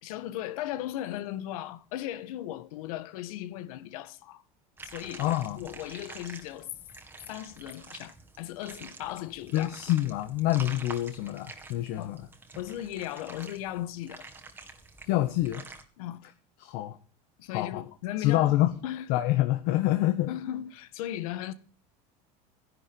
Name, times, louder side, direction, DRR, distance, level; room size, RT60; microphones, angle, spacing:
voice 1, 0.0-4.4 4.8-5.3 5.5-6.7 7.3-9.8 12.0-12.2 12.5-14.3 16.0-16.2 17.4-18.5 18.8-19.1 20.3-21.5, left 13 dB, 80° left, 1.5 m, -37 dB
sound 1, 4.8-15.8, right 3 dB, 10° right, 1.9 m, -47 dB
voice 2, 5.2-5.6 9.5-12.3 15.1-15.6 16.6-17.0 17.5-17.8 18.2-18.7 19.1-20.3, left 15 dB, 60° left, 1.4 m, -26 dB
14.5 x 11.0 x 5.4 m
supercardioid pair, 140°, 18 cm